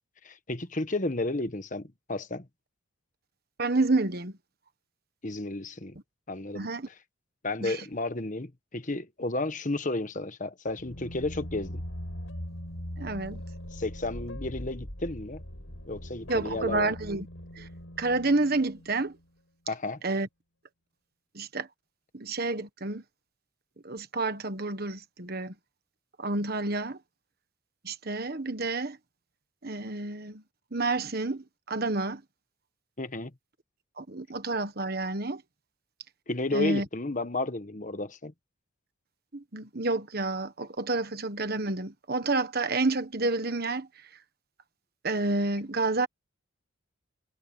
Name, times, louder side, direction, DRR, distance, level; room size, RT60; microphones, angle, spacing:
voice 1, 0.2-2.5 5.2-6.0 6.3-6.7 7.4-11.8 13.7-15.4 15.9-16.9 19.7-20.0 33.0-33.3 36.3-38.3, left 2 dB, 35° left, 1.3 m, -32 dB
voice 2, 3.6-4.3 6.5-6.9 7.6-7.8 13.0-13.4 16.3-17.3 17.6-17.7 18.0-19.2 20.0-20.3 21.3-21.7 22.1-23.0 23.8-25.5 26.2-27.0 27.8-29.0 29.6-30.4 30.7-32.2 34.0-35.4 36.5-36.8 39.3-43.9 45.0-46.1, right 3 dB, 45° right, 1.4 m, -29 dB
sound 1, 10.7-19.2, equal, 75° left, 5.6 m, -41 dB
head